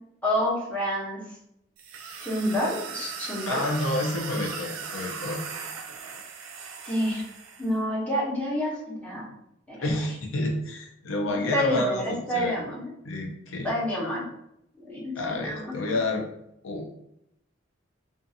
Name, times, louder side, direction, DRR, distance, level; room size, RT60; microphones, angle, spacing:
voice 1, 0.2-1.2 2.0-3.6 6.8-7.2 7.6-9.3 9.7-9.8 11.5-12.9 13.6-14.2 14.8-15.7, left 1 dB, 5° left, -6 dB, 0.8 m, -28 dB
sound 1, 1.8-7.7, right 5 dB, 80° right, 0.4 m, -38 dB
voice 2, 3.5-5.4 9.8-12.6 13.0-13.7 15.2-16.2 16.6-16.9, left 2 dB, 70° left, 2 dB, 0.5 m, -29 dB
2.5 x 2.4 x 2.6 m, 0.79 s
head